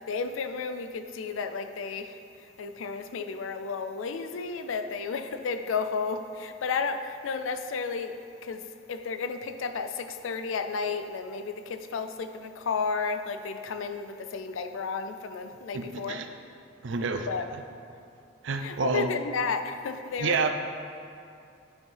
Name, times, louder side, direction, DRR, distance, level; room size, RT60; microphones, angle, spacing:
voice 1, 0.1-8.6 8.9-16.2 17.3-17.5 18.6-20.5, left 5 dB, 85° left, 8 dB, 0.4 m, -32 dB
voice 2, 15.7-16.3 16.8-17.3 18.4-19.1 20.2-20.5, right 4 dB, 70° right, 7 dB, 0.4 m, -28 dB
8.8 x 4.4 x 3.4 m, 2.6 s
head